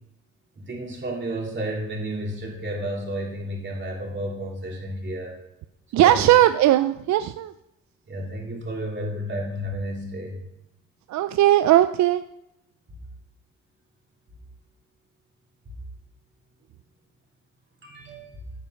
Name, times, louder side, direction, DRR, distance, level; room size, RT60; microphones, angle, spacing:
voice 1, 0.6-5.3 5.9-6.3 8.1-10.4 17.8-18.3, right 1 dB, 40° right, -2 dB, 3.3 m, -31 dB
voice 2, 5.9-7.5 11.1-12.2, right 13 dB, 70° right, 11 dB, 0.4 m, -18 dB
8.3 x 5.7 x 5.8 m, 0.84 s
cardioid pair, 90°, 30 cm